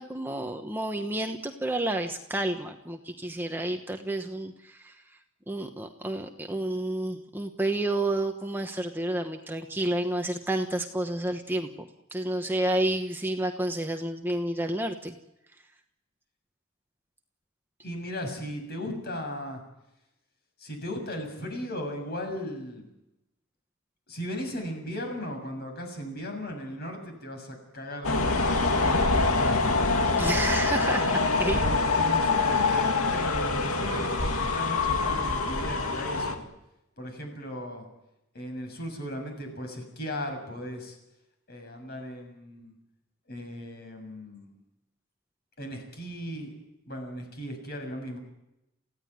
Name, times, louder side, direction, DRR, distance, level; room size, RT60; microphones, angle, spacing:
voice 1, 0.0-4.9 5.5-11.7 12.1-15.1 30.2-31.6, right 1 dB, 10° right, 4 dB, 1.1 m, -30 dB
voice 2, 17.8-19.6 20.6-22.9 24.1-30.0 31.5-36.5 37.0-37.8 38.3-41.0 41.5-42.7 43.3-44.5 45.6-46.5 46.9-48.2, equal, 45° left, 4 dB, 7.1 m, -37 dB
sound 1, 28.0-36.4, left 3 dB, 90° left, 2.4 m, -25 dB
29.0 x 16.5 x 9.6 m, 0.92 s
head